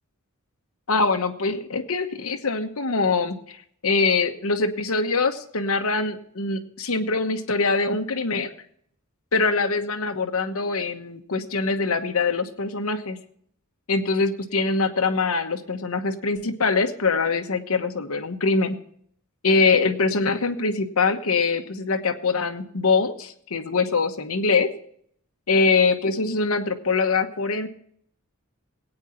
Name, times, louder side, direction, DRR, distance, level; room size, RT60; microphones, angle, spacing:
voice 1, 0.9-3.6 3.8-8.5 9.3-13.2 13.9-18.8 19.4-24.7 25.5-27.7, left 4 dB, 75° left, 6 dB, 1.1 m, -23 dB
18.5 x 9.0 x 4.4 m, 0.64 s
head